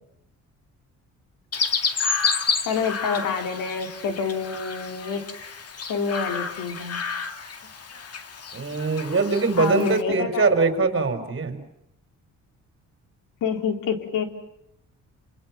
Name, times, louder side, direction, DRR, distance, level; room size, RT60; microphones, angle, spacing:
Chirp tweet, 1.5-10.0, left 5 dB, 50° left, 2.2 m, -30 dB
voice 1, 2.7-5.2 5.9-7.0 9.6-10.6 13.4-14.3, left 6 dB, 85° left, 5 dB, 3.8 m, -27 dB
voice 2, 8.5-11.6, right 4 dB, 40° right, 7 dB, 4.8 m, -22 dB
28.5 x 27.5 x 6.0 m, 0.78 s
cardioid pair, 100°, 31 cm